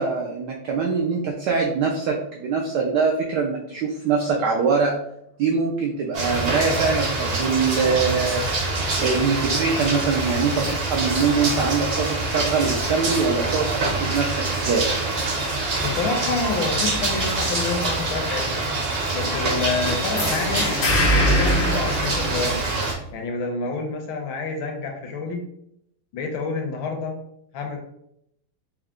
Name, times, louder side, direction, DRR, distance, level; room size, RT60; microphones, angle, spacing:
voice 1, 0.0-4.9 5.4-8.4 9.0-14.9, right 5 dB, 90° right, 0 dB, 0.9 m, -23 dB
sound 1, 6.1-22.9, right 2 dB, 60° right, 0.6 m, -25 dB
Chicken rooster, 15.2-17.7 18.1-20.6, right 3 dB, 75° right, 1.5 m, -38 dB
voice 2, 15.8-18.6 19.1-20.7 21.0-22.6 23.1-25.4 26.1-27.2 27.5-27.8, left 4 dB, 75° left, 2 dB, 1.3 m, -28 dB
sound 2, 20.2-22.9, equal, 90° left, 0.5 m, -22 dB
4.4 x 2.1 x 3.5 m, 0.75 s
omnidirectional pair, 2.4 m